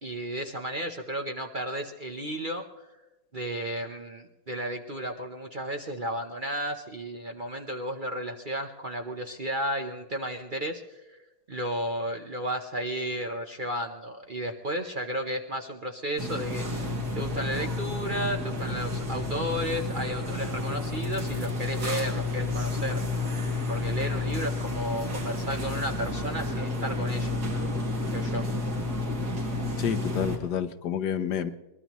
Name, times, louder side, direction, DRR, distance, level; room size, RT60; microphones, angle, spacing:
voice 1, 0.0-2.6 3.3-11.2 11.5-23.0 23.7-27.3 28.1-28.4, equal, 40° right, 3 dB, 0.8 m, -33 dB
sound 1, 16.2-30.4, left 2 dB, 65° right, 3.0 m, -30 dB
voice 2, 29.8-31.5, left 8 dB, 75° left, 11 dB, 1.4 m, -29 dB
22.5 x 20.5 x 3.0 m, 1.1 s
omnidirectional pair, 1.8 m